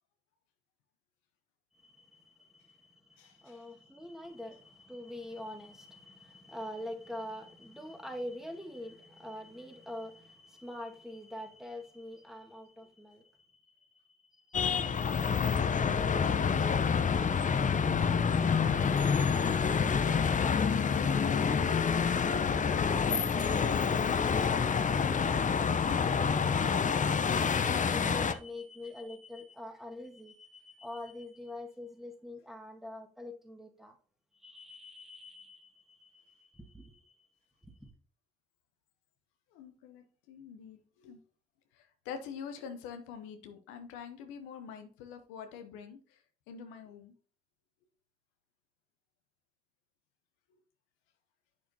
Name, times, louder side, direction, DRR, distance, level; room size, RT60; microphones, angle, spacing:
voice 1, 1.7-17.3 26.0-34.0 34.3-37.3 37.6-37.9, left 1 dB, ahead, 1.7 m, -46 dB
voice 2, 3.2-3.6 17.9-22.2 39.5-41.2 41.7-46.2 46.5-47.1, left 7 dB, 85° left, 0.8 m, -46 dB
sound 1, 14.5-28.3, left 6 dB, 40° left, 0.7 m, -28 dB
sound 2, 16.2-21.4 21.6-21.7 21.9-24.2, right 3 dB, 65° right, 3.3 m, -53 dB
8.5 x 6.3 x 2.8 m
hypercardioid pair, 40°, 20 cm